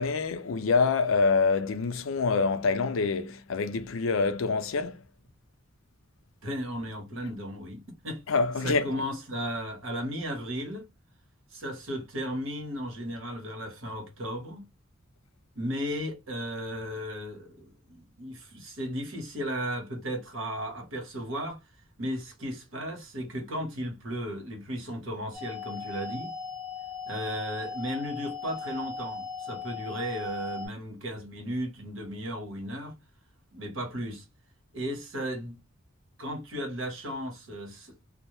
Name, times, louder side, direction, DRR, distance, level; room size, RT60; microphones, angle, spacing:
voice 1, 0.0-5.0 8.3-8.9, left 4 dB, 75° left, 0.4 m, -26 dB
voice 2, 6.4-8.2 8.6-10.9 11.5-14.7 15.5-21.6 22.0-26.3 27.1-32.9 33.5-34.2 34.7-35.6 36.2-37.9, equal, 80° right, 1.0 m, -35 dB
sound 1, 25.3-30.7, left 4 dB, 5° right, 0.9 m, -38 dB
2.2 x 2.0 x 2.9 m
head